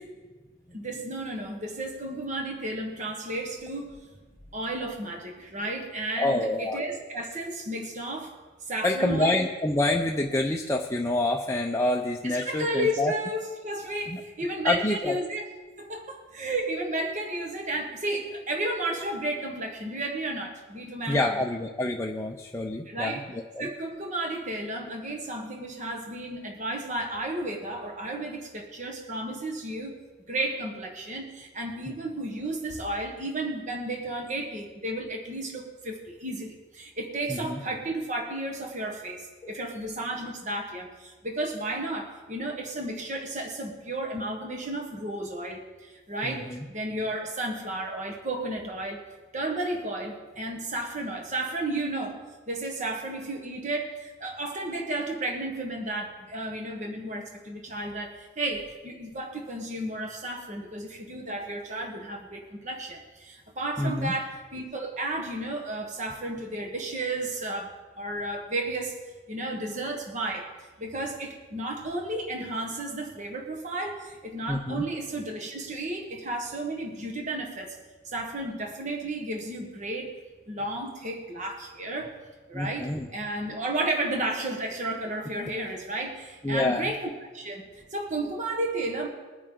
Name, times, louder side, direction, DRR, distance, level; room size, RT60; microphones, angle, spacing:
voice 1, 0.7-4.0 4.5-8.3 8.6-9.4 12.2-15.4 15.8-21.4 22.8-23.2 23.6-49.0 49.3-52.2 52.5-69.0 69.3-70.5 70.8-77.7 78.0-80.2 80.5-82.1 82.5-89.1, right 1 dB, 35° right, 2 dB, 1.3 m, -33 dB
voice 2, 6.2-6.8 8.8-13.1 14.1-15.2 21.1-23.7 31.9-32.0 37.4-37.5 39.4-39.5 46.2-46.6 63.8-64.1 74.5-74.8 82.5-83.1 86.4-86.9, left 1 dB, 15° left, 1 dB, 0.6 m, -27 dB
21.0 x 9.5 x 3.8 m, 1.3 s
head